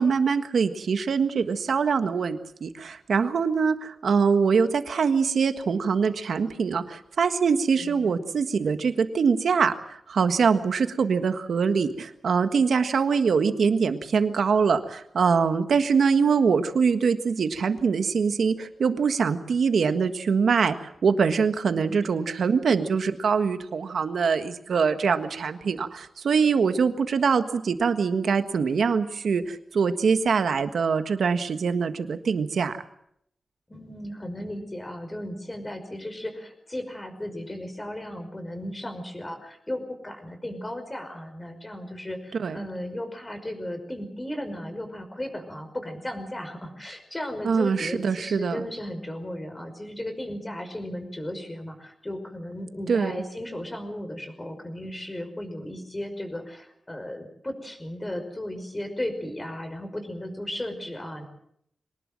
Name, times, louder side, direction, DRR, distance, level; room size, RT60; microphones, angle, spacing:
voice 1, 0.0-20.7 21.0-32.8 42.4-42.6 47.4-48.6 52.9-53.2, right 5 dB, 85° right, 9 dB, 1.5 m, -23 dB
voice 2, 7.7-8.1 21.7-22.3 33.7-61.2, left 1 dB, 20° left, 6 dB, 5.5 m, -35 dB
24.0 x 19.0 x 7.7 m, 0.71 s
wide cardioid pair, 105°, 0 cm